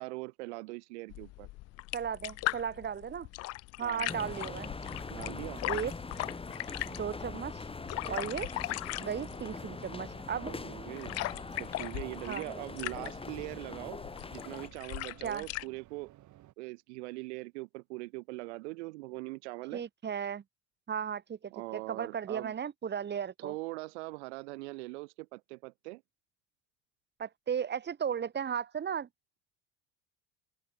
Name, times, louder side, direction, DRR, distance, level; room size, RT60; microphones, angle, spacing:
voice 1, 0.0-1.5 3.8-4.1 5.1-5.6 10.5-11.1 11.6-14.0 14.3-16.1 16.6-19.8 21.5-22.5 23.4-26.0, right 23 dB, 85° right, 1.3 m, -41 dB
sound 1, 1.1-15.7, left 20 dB, 50° left, 0.4 m, -40 dB
voice 2, 1.9-3.3 3.8-4.7 5.6-5.9 6.8-7.7 8.1-8.5 9.0-10.5 12.3-12.5 15.2-15.4 19.7-20.4 20.9-23.5 27.2-29.1, right 8 dB, 30° right, 2.0 m, -35 dB
sound 2, 4.1-14.7, left 3 dB, 15° left, 2.7 m, -42 dB
sound 3, 9.0-16.5, right 15 dB, 60° right, 7.4 m, -57 dB
open air
supercardioid pair, 90°, 34 cm